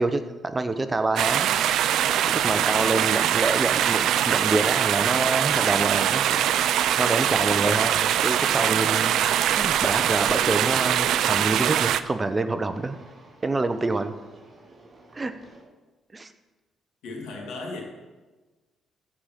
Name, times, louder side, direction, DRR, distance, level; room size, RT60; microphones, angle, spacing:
voice 1, 0.0-1.5 2.3-6.4 7.0-9.2 9.5-13.0 13.4-14.1 15.1-15.3 16.1-16.3, right 2 dB, 25° right, 10 dB, 0.8 m, -26 dB
sound 1, 1.2-12.0, right 10 dB, 80° right, 0.4 m, -22 dB
sound 2, 7.4-15.6, right 2 dB, 40° right, 3.5 m, -50 dB
voice 2, 17.0-17.8, left 3 dB, 90° left, 1 dB, 2.2 m, -35 dB
14.5 x 5.1 x 5.9 m, 1.2 s
cardioid pair, 90°, 0 cm